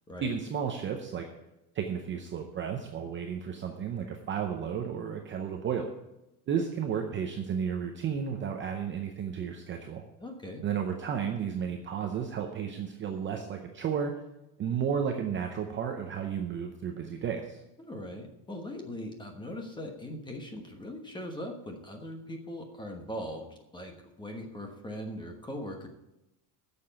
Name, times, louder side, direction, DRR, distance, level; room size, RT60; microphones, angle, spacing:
voice 1, 0.2-1.3 1.7-5.9 6.5-10.0 10.6-14.1 14.6-17.6, right 7 dB, 25° right, 3 dB, 0.7 m, -33 dB
voice 2, 10.2-10.6 17.8-23.5 23.7-25.9, equal, 10° left, 4 dB, 1.2 m, -40 dB
9.5 x 7.0 x 8.5 m, 0.92 s
cardioid pair, 170°, 50 cm